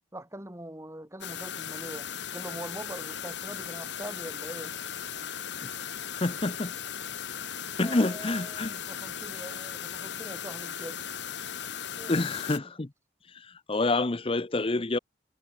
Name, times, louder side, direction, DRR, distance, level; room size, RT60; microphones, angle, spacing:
voice 1, 0.1-4.8 7.8-11.1 12.0-12.5, right 1 dB, 15° right, 7.1 m, -43 dB
sound 1, 1.2-12.6, left 8 dB, 70° left, 1.6 m, -37 dB
voice 2, 6.2-6.7 7.8-8.7 12.1-12.9 13.7-15.0, left 2 dB, 30° left, 0.8 m, -27 dB
head